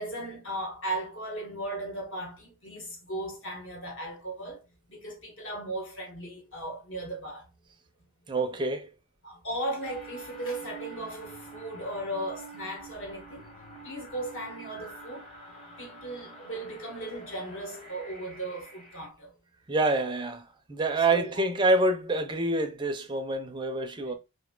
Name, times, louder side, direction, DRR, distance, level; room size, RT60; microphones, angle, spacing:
voice 1, 0.0-4.6 4.9-7.5 9.2-13.4 13.8-15.3 15.8-19.3 20.8-21.3 24.1-24.2, right 1 dB, 60° left, 1.1 m, -37 dB
voice 2, 8.3-8.9 19.7-24.1, right 2 dB, 20° right, 0.4 m, -27 dB
sound 1, 9.8-19.1, right 2 dB, 30° left, 1.0 m, -47 dB
2.6 x 2.4 x 3.6 m
head